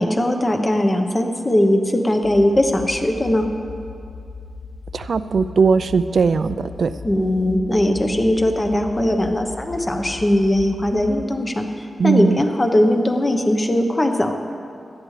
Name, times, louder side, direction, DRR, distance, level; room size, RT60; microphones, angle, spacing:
voice 1, 0.0-3.5 7.0-14.3, left 1 dB, 25° left, 5 dB, 1.0 m, -19 dB
sound 1, 2.2-11.1, left 4 dB, 50° left, 1.0 m, -38 dB
voice 2, 4.9-6.9 12.0-12.4, right 5 dB, 65° right, 12 dB, 0.4 m, -19 dB
17.5 x 12.0 x 3.3 m, 2.4 s
wide cardioid pair, 85°, 0 cm